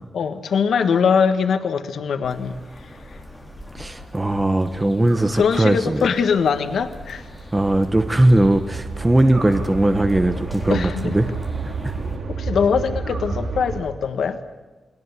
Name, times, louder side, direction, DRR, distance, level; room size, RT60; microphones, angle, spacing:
voice 1, 0.1-3.2 5.3-7.3 10.7-11.1 12.3-14.4, left 6 dB, 80° left, 8 dB, 1.5 m, -22 dB
sound 1, 1.1-1.9 5.0-6.0 9.3-10.3 13.0-14.0, right 3 dB, 60° right, 3.8 m, -43 dB
sound 2, 2.2-12.2, left 1 dB, 5° left, 3.9 m, -40 dB
voice 2, 3.7-6.0 7.5-11.3 11.6-11.9, right 1 dB, 15° right, 8 dB, 1.0 m, -19 dB
sound 3, 6.9-13.8, right 4 dB, 80° right, 4.4 m, -30 dB
29.5 x 21.5 x 8.3 m, 1.2 s
wide cardioid pair, 180°, 0 cm